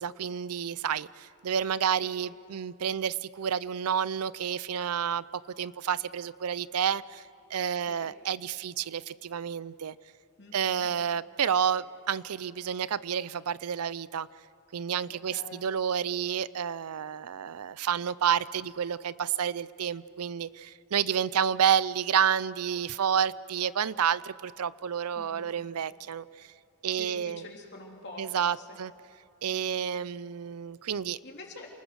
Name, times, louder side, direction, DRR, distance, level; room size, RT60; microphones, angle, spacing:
voice 1, 0.0-5.2 5.6-7.2 7.5-9.9 10.5-14.3 14.7-26.5 26.8-27.4 28.2-28.9 29.4-31.2, right 8 dB, 85° right, 19 dB, 0.5 m, -30 dB
voice 2, 10.4-10.9 15.1-15.7 25.2-25.5 26.9-28.8 29.5-29.8 31.2-31.7, left 2 dB, 50° left, 0 dB, 3.6 m, -47 dB
28.0 x 20.0 x 6.4 m, 2.7 s
head